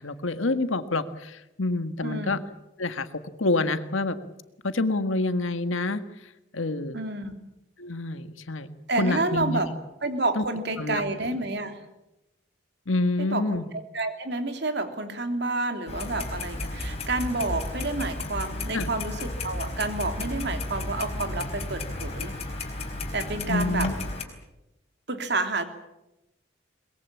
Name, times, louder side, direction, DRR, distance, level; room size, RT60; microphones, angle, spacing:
voice 1, 0.0-2.4 2.8-4.2 4.6-6.0 6.5-7.0 7.8-9.6 10.4-10.5 10.8-11.0 12.9-13.7 18.7-18.9 23.5-23.9, left 2 dB, 85° left, 10 dB, 1.7 m, -27 dB
voice 2, 2.0-2.3 6.9-7.4 8.9-9.7 10.0-11.8 13.2-13.4 13.9-22.3 23.1-23.9 25.1-25.6, right 2 dB, 55° right, 7 dB, 3.0 m, -29 dB
Clock, 15.9-24.2, left 2 dB, 30° left, 4.6 m, -33 dB
22.5 x 21.5 x 8.8 m, 0.93 s
head